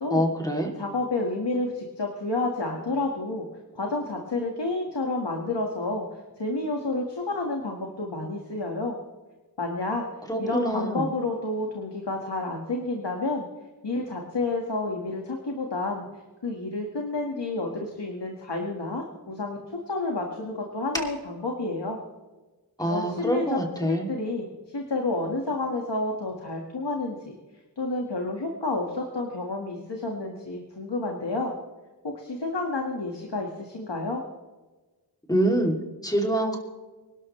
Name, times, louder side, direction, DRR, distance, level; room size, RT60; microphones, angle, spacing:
voice 1, 0.1-0.7 10.3-11.1 22.8-24.1 35.3-35.7 36.0-36.6, right 1 dB, 10° left, 1 dB, 2.8 m, -25 dB
voice 2, 0.8-3.5 3.8-9.0 9.6-10.0 10.4-13.5 13.8-16.1 16.4-19.6 19.9-22.0 22.9-24.5 24.7-27.3 27.8-31.5 32.0-34.2, left 2 dB, 80° left, 1 dB, 1.8 m, -30 dB
25.0 x 12.0 x 3.2 m, 1.2 s
wide cardioid pair, 55°, 41 cm